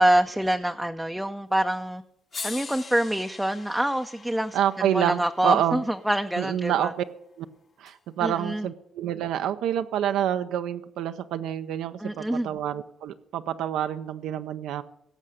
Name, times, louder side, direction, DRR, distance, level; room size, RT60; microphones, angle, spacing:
voice 1, 0.0-2.0 2.4-6.9 8.2-8.7 12.0-12.5, right 1 dB, 5° right, 6 dB, 0.5 m, -26 dB
sound 1, 1.7-1.8 2.3-6.5 7.9-8.0, left 4 dB, 45° left, 1.1 m, -42 dB
voice 2, 4.5-5.8 6.4-7.0 7.4-7.5 7.8-14.8, right 10 dB, 85° right, 9 dB, 0.5 m, -27 dB
16.5 x 6.5 x 6.4 m, 0.86 s
cardioid pair, 90°, 0 cm